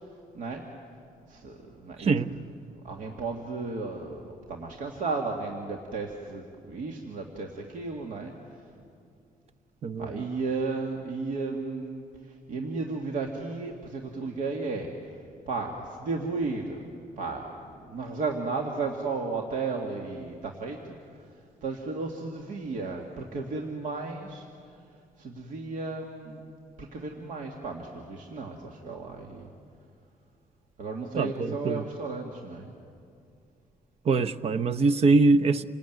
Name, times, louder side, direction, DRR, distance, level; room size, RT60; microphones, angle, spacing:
voice 1, 1.3-2.4 2.8-8.3 10.0-14.9 15.5-16.8 17.2-17.6 17.9-21.0 21.6-24.5 25.2-29.5 30.8-32.7, right 3 dB, 65° right, 1 dB, 2.2 m, -34 dB
voice 2, 2.0-2.3 9.8-10.1 31.2-31.8 34.0-35.6, right 3 dB, 45° right, 11 dB, 0.9 m, -23 dB
28.0 x 19.5 x 9.4 m, 2.4 s
cardioid pair, 125°, 14 cm